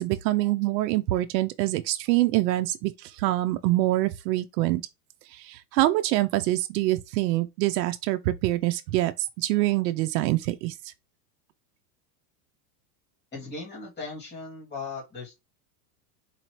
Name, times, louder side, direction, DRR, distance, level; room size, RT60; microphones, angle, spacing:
voice 1, 0.0-4.8 5.2-10.9, right 17 dB, 85° right, 0.6 m, -25 dB
voice 2, 13.3-15.4, left 4 dB, 20° left, 2.4 m, -38 dB
4.1 x 2.8 x 2.9 m
supercardioid pair, 140°, 49 cm